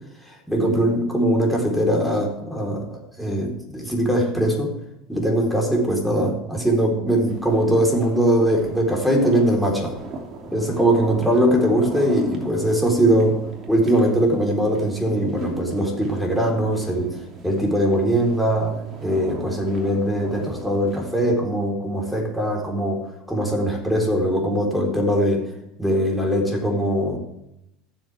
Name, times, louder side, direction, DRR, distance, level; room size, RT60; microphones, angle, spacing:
voice 1, 0.3-4.7 5.1-9.9 10.5-13.4 13.7-17.2 17.4-18.7 19.0-25.4 25.8-27.2, right 1 dB, ahead, 0 dB, 4.0 m, -21 dB
sound 1, 7.3-21.3, right 2 dB, 40° right, 2.9 m, -38 dB
16.0 x 7.4 x 3.6 m, 0.84 s
hypercardioid pair, 85°, 0 cm